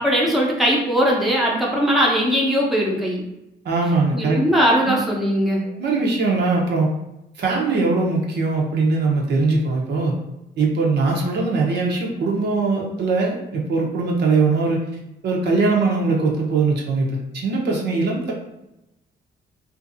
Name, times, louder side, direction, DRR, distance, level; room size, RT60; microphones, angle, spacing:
voice 1, 0.0-3.2 4.1-5.6, equal, ahead, -4 dB, 0.7 m, -19 dB
voice 2, 3.6-4.4 4.9-5.0 5.8-6.9 7.4-10.2 10.6-14.8 15.2-18.3, right 3 dB, 55° right, -1 dB, 0.7 m, -21 dB
2.5 x 2.5 x 2.6 m, 0.90 s
cardioid pair, 90°, 20 cm